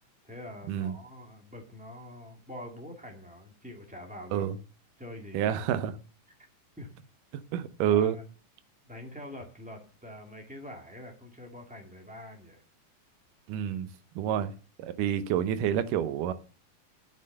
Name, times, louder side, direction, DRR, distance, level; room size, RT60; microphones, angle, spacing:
voice 1, 0.2-4.5 5.0-5.6 6.8-6.9 7.8-8.2 8.8-12.6 14.3-14.6, left 1 dB, 5° right, 1.1 m, -45 dB
voice 2, 5.3-5.9 7.5-8.2 13.5-13.9 14.2-14.5 14.8-16.3, right 10 dB, 80° right, 2.4 m, -28 dB
8.9 x 7.9 x 6.5 m
omnidirectional pair, 3.8 m